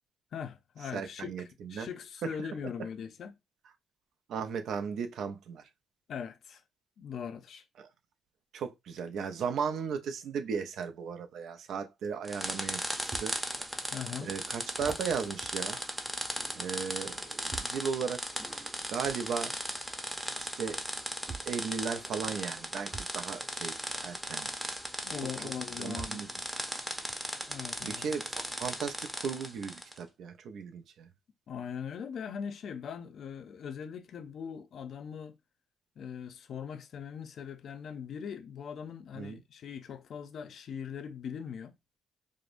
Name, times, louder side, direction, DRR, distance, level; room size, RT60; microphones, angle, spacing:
voice 1, 0.3-1.3 1.7-3.3 6.1-6.6 7.0-7.6 13.9-14.3 25.0-26.3 27.5-28.1 31.5-35.4 36.0-41.7, left 7 dB, 65° left, 0.6 m, -40 dB
voice 2, 0.9-1.9 4.3-5.6 7.8-7.9 8.5-13.3 14.2-15.8 16.6-18.2 18.9-19.5 20.4-20.8 21.5-23.7 24.0-24.5 25.8-26.3 27.8-28.3 28.6-31.1 39.2-39.4, right 6 dB, 75° right, 0.6 m, -36 dB
sound 1, 12.0-12.1 13.1-13.3 13.9-14.0 14.7-16.6 17.5-17.9 19.0-19.2 20.5-20.6 21.3-21.6 22.9-23.2 24.8-24.9 26.0-26.3 27.1-27.2, right 4 dB, 50° right, 1.5 m, -45 dB
sound 2, 12.3-30.0, equal, 5° right, 0.7 m, -37 dB
4.8 x 2.1 x 2.5 m
cardioid pair, 90°, 0 cm